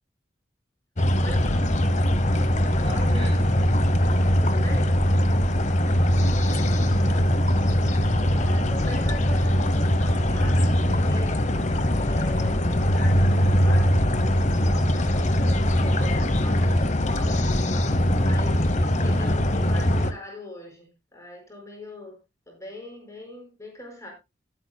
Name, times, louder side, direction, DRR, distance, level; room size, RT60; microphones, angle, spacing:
sound 1, 1.0-20.1, equal, 40° left, 0.9 m, -21 dB
voice 1, 1.2-1.7 4.4-5.0 8.3-11.4 11.9-14.0 15.1-17.4 18.2-22.2 22.5-24.1, left 1 dB, 15° left, 5.0 m, -41 dB
voice 2, 2.7-3.6 6.1-7.3, right 1 dB, 25° right, 4.5 m, -39 dB
19.5 x 8.8 x 2.2 m
head